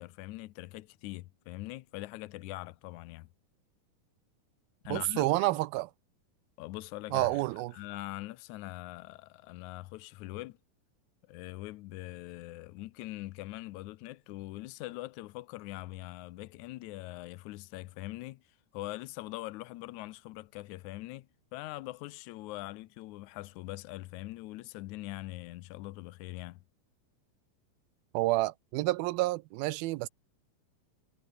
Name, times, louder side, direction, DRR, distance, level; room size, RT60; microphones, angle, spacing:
voice 1, 0.0-3.3 4.8-5.5 6.6-7.5 7.7-10.6 11.3-18.4 18.7-26.6, left 18 dB, 85° left, 1.7 m, -42 dB
voice 2, 4.9-5.9 7.1-7.7 28.1-30.1, right 19 dB, 85° right, 2.5 m, -29 dB
omnidirectional pair, 4.2 m